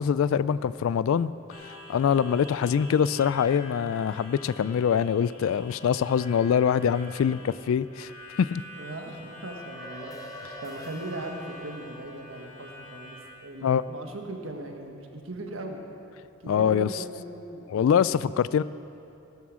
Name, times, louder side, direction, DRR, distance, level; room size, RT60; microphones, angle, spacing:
voice 1, 0.0-1.3 1.9-7.4 7.7-8.1 8.4-8.6 13.6-13.8 16.5-17.0 17.7-18.6, left 7 dB, 65° left, 17 dB, 0.3 m, -24 dB
Harmonica, 1.5-13.3, left 2 dB, 35° left, 3.3 m, -46 dB
voice 2, 8.7-10.1 10.6-15.8 16.4-17.7, right 1 dB, 65° right, 3 dB, 1.5 m, -39 dB
sound 1, 9.2-13.8, equal, 15° left, 1.0 m, -46 dB
16.5 x 12.0 x 6.2 m, 2.8 s
head